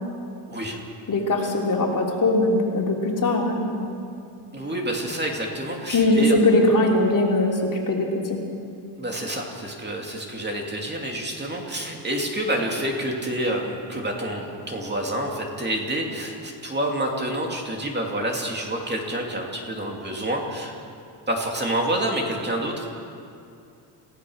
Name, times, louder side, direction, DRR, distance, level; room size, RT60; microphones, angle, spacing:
voice 1, 0.5-0.8 4.5-6.4 9.0-20.7 21.3-22.9, right 1 dB, 20° right, 0 dB, 2.6 m, -28 dB
voice 2, 1.1-3.9 5.9-8.4, left 2 dB, 40° left, 0 dB, 3.1 m, -21 dB
28.5 x 16.5 x 6.4 m, 2.6 s
cardioid pair, 165°, 49 cm